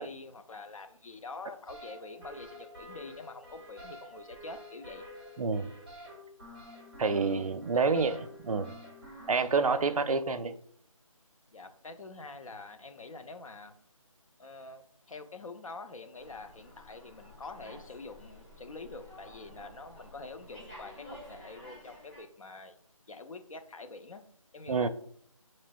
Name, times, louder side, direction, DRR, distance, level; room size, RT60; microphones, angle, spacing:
voice 1, 0.0-5.1 7.7-8.0 11.5-13.7 14.4-22.8 23.1-24.2 24.5-24.9, left 3 dB, 70° left, 8 dB, 0.5 m, -46 dB
sound 1, 1.7-10.0, equal, 5° left, 0.7 m, -49 dB
voice 2, 5.4-5.7 7.0-8.2 8.4-8.8 9.3-10.5 24.7-24.9, right 4 dB, 80° right, 11 dB, 0.4 m, -28 dB
Slam, 16.2-22.2, equal, 20° left, 1.7 m, -51 dB
4.9 x 3.1 x 2.2 m, 0.64 s
figure-of-eight pair, 170°, 18 cm